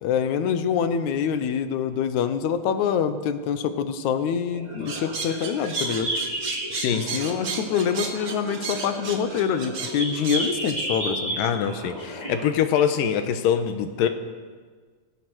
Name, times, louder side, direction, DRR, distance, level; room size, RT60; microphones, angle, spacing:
voice 1, 0.0-6.1 6.9-11.4, left 7 dB, 65° left, 10 dB, 2.3 m, -25 dB
sound 1, 4.5-12.5, right 1 dB, 10° right, 5.7 m, -32 dB
sound 2, 4.9-10.8, right 5 dB, 50° right, 2.4 m, -34 dB
voice 2, 6.7-7.2 11.4-14.1, left 8 dB, 90° left, 8 dB, 2.8 m, -24 dB
25.0 x 18.0 x 6.3 m, 1.5 s
omnidirectional pair, 3.8 m